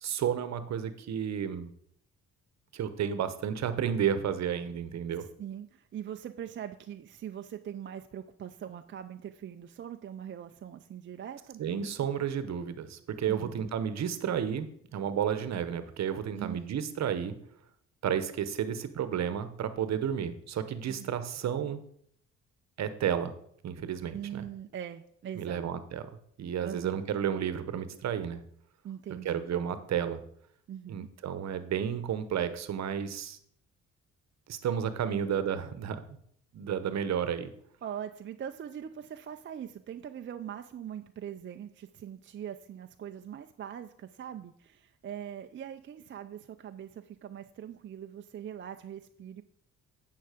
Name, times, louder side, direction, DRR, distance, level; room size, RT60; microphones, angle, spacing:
voice 1, 0.0-1.7 2.7-5.2 11.6-17.3 18.0-21.8 22.8-23.3 23.6-24.4 25.4-26.1 26.4-28.4 29.2-30.2 30.9-33.4 34.5-36.0 36.5-37.5, right 8 dB, 60° right, 11 dB, 1.0 m, -32 dB
voice 2, 5.2-11.6 13.3-13.7 16.3-16.8 20.9-21.1 24.1-25.7 26.6-27.0 28.8-29.5 30.7-31.1 35.1-35.3 37.8-49.4, right 9 dB, 40° right, 7 dB, 0.5 m, -42 dB
9.2 x 5.7 x 5.0 m, 0.66 s
cardioid pair, 90°, 30 cm